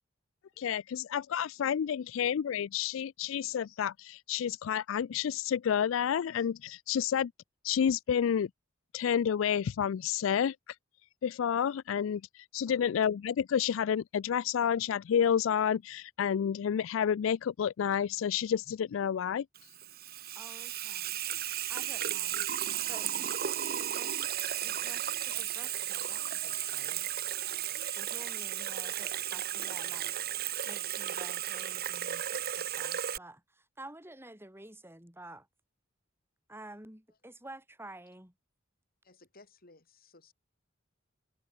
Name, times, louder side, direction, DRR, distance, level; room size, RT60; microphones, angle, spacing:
voice 1, 0.6-7.3 7.6-8.5 8.9-10.5 11.2-19.5, left 8 dB, 70° left, 0.3 m, -30 dB
Water tap faucet / Sink (filling or washing), 19.6-33.2, right 11 dB, 50° right, 1.1 m, -34 dB
voice 2, 20.4-21.2 21.7-22.5 22.9-24.2 24.5-27.2 28.0-30.1 30.7-35.5 36.5-38.3, right 1 dB, 10° right, 5.1 m, -51 dB
voice 3, 39.0-40.3, left 3 dB, 50° left, 4.4 m, -58 dB
head